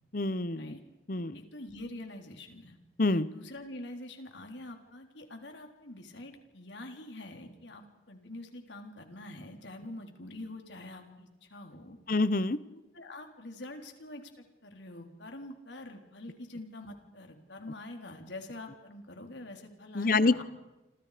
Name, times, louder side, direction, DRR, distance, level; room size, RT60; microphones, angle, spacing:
voice 1, 0.1-0.7 1.1-1.4 3.0-3.3 12.1-12.6 19.9-20.3, left 2 dB, 50° left, 16 dB, 0.9 m, -26 dB
voice 2, 1.3-2.8 3.1-12.0 12.7-20.4, left 1 dB, 80° left, 4 dB, 3.9 m, -45 dB
29.0 x 26.5 x 5.1 m, 1.0 s
head